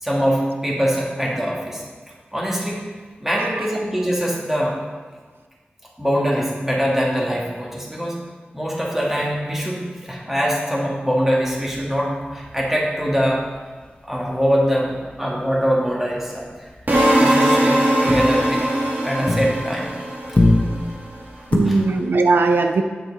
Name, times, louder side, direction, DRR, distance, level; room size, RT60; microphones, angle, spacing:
voice 1, 0.0-1.8 2.3-2.8 3.2-4.8 6.0-8.2 8.5-13.4 14.0-16.5 17.2-18.6 19.0-19.9 21.4-21.8, equal, 10° right, -4 dB, 2.2 m, -23 dB
voice 2, 3.3-3.7 21.5-22.8, right 3 dB, 85° right, 6 dB, 0.5 m, -19 dB
sound 1, 11.5-15.1 15.4-15.8 16.0-19.9 20.2-21.6, left 1 dB, 35° left, 1.3 m, -25 dB
sound 2, 16.9-20.9, right 1 dB, 55° right, 2.0 m, -20 dB
8.6 x 6.5 x 4.2 m, 1.4 s
wide cardioid pair, 55°, 4 cm